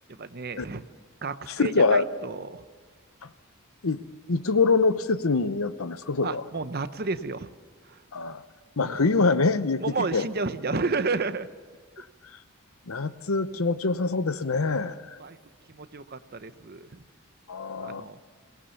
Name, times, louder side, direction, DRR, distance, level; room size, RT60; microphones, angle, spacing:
voice 1, 0.1-0.8 1.2-2.6 6.2-7.5 7.8-8.0 8.8-9.0 9.8-11.5 14.8-14.9 15.2-15.4 15.7-17.0 17.8-18.2, right 3 dB, 45° right, 12 dB, 0.8 m, -31 dB
voice 2, 1.5-2.0 3.8-4.0 4.3-6.4 8.1-8.4 8.8-10.3 12.0-12.1 12.9-15.2 17.5-18.1, left 3 dB, 70° left, 13 dB, 0.8 m, -25 dB
22.0 x 18.5 x 7.0 m, 1.5 s
head